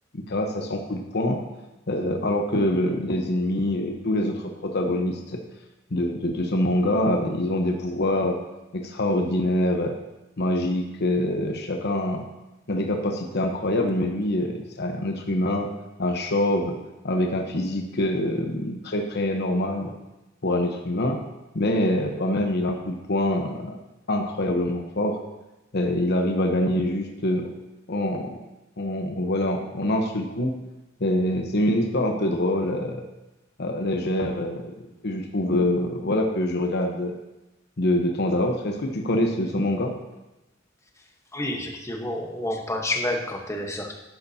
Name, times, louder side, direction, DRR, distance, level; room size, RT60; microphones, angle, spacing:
voice 1, 0.1-1.4 1.9-5.4 5.9-8.4 8.7-9.9 10.4-12.2 12.7-15.7 16.0-16.7 17.0-19.9 20.4-21.2 21.5-23.8 24.1-25.2 25.7-27.5 27.9-28.4 28.8-30.5 31.0-33.1 33.6-34.7 35.0-37.1 37.8-39.9, left 1 dB, 55° left, 3 dB, 0.9 m, -25 dB
voice 2, 41.3-44.0, left 1 dB, 15° left, 2 dB, 1.1 m, -29 dB
11.0 x 10.0 x 2.8 m, 1.0 s
head